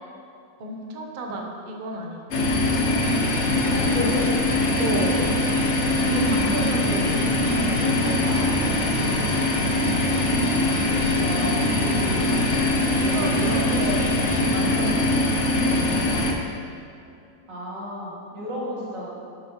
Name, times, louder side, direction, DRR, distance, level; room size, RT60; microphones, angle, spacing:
voice 1, 0.6-2.5 3.8-4.1 4.7-5.3 6.0-9.5 11.1-11.3 12.9-14.9 15.6-16.2, right 2 dB, 45° right, 1 dB, 0.6 m, -33 dB
sound 1, 2.3-16.3, left 2 dB, 55° left, 0.8 m, -22 dB
sound 2, 3.0-14.4, right 1 dB, 15° right, 1.2 m, -39 dB
voice 2, 3.7-4.2 6.2-6.9 11.2-12.2 12.9-13.8 14.8-15.0 17.5-19.1, equal, 75° right, -7 dB, 2.6 m, -33 dB
11.0 x 6.3 x 3.0 m, 2.6 s
omnidirectional pair, 2.0 m